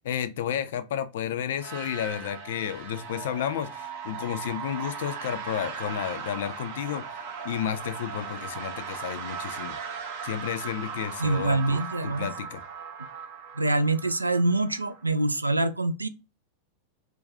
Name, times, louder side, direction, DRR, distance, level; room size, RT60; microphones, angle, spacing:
voice 1, 0.0-7.1 7.4-9.8 10.2-12.6, left 9 dB, 55° left, 0.4 m, -32 dB
sound 1, 1.5-15.2, right 6 dB, 50° right, 0.6 m, -38 dB
voice 2, 11.2-12.3 13.6-16.1, right 2 dB, 80° right, 0.3 m, -25 dB
2.5 x 2.3 x 3.3 m
figure-of-eight pair, 90°, 0 cm